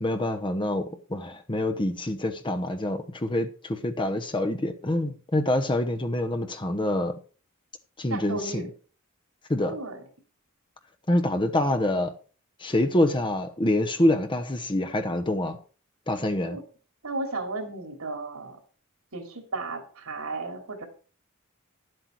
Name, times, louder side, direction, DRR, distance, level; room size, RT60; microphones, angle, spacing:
voice 1, 0.0-7.1 8.0-8.7 9.5-9.7 11.1-12.1 12.6-15.6 16.1-16.6, left 1 dB, 25° left, 0.9 m, -26 dB
voice 2, 8.1-8.7 9.7-10.0 16.4-16.6 17.0-18.6 19.1-20.9, right 3 dB, 80° right, 2.9 m, -34 dB
11.0 x 7.9 x 4.6 m
head